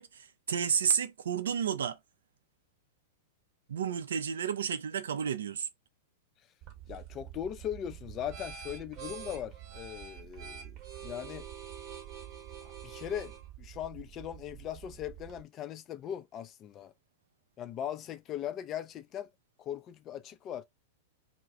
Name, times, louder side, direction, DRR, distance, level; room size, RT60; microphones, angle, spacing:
voice 1, 0.0-2.0 3.7-5.7, right 7 dB, 70° right, 0.4 m, -31 dB
sound 1, 6.6-15.4, right 9 dB, 40° right, 0.9 m, -46 dB
voice 2, 6.9-11.5 12.8-16.9 17.6-19.3 19.6-20.6, left 10 dB, 35° left, 0.4 m, -39 dB
2.3 x 2.1 x 3.6 m
figure-of-eight pair, 95°, 0 cm